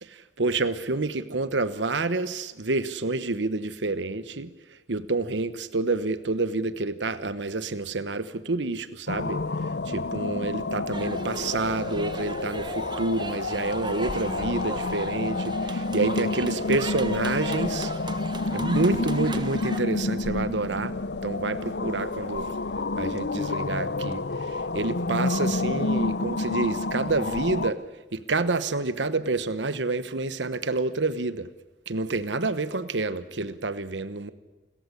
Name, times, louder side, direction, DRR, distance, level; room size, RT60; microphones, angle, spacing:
voice 1, 0.0-4.5 4.9-9.4 9.9-17.9 18.5-21.0 21.2-22.5 23.0-27.8 28.1-31.5 31.9-34.3, right 3 dB, 85° right, 13 dB, 1.1 m, -28 dB
sound 1, 9.1-27.7, left 3 dB, 70° left, 0.8 m, -29 dB
sound 2, 10.9-19.8, right 3 dB, 25° right, 1.4 m, -38 dB
29.0 x 15.0 x 9.8 m, 1.2 s
head